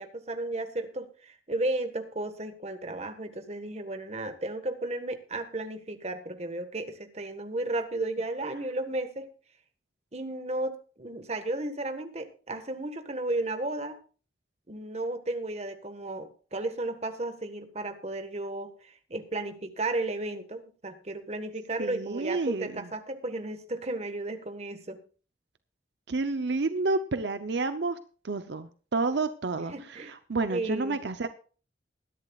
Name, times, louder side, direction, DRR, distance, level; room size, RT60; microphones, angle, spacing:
voice 1, 0.0-9.3 10.1-14.0 14.7-25.0 29.7-30.1 30.5-31.0, right 2 dB, 35° right, 8 dB, 1.4 m, -34 dB
voice 2, 21.8-22.9 26.1-28.0 28.2-31.3, right 3 dB, 75° right, 10 dB, 0.7 m, -30 dB
21.0 x 10.5 x 2.4 m, 0.37 s
head